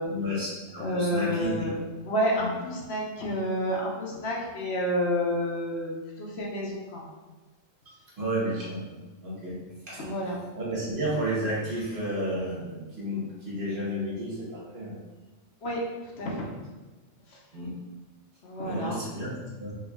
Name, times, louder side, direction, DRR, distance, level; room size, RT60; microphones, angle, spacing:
voice 1, 0.0-1.6 2.4-2.5 8.2-9.6 9.9-10.1 10.6-15.0 17.5-17.7 18.6-19.7, equal, 50° right, -6 dB, 1.2 m, -32 dB
voice 2, 0.8-1.8 2.1-7.1 9.9-10.4 15.6-15.8 16.2-16.6 17.3-17.4 18.4-19.0, equal, 60° left, -3 dB, 0.9 m, -29 dB
3.2 x 3.0 x 3.5 m, 1.2 s
omnidirectional pair, 1.3 m